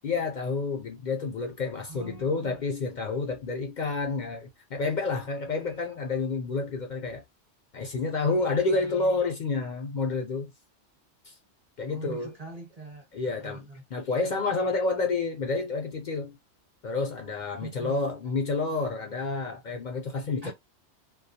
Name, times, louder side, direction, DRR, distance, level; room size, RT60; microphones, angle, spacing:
voice 1, 0.0-7.2 7.7-10.5 11.3-11.4 11.8-12.3 13.1-16.4 16.8-20.5, left 3 dB, 55° left, 0.5 m, -29 dB
voice 2, 1.9-2.6 8.7-9.1 11.9-13.8 17.6-18.0 20.4-20.5, right 4 dB, 35° right, 0.9 m, -43 dB
2.2 x 2.2 x 2.7 m
omnidirectional pair, 1.2 m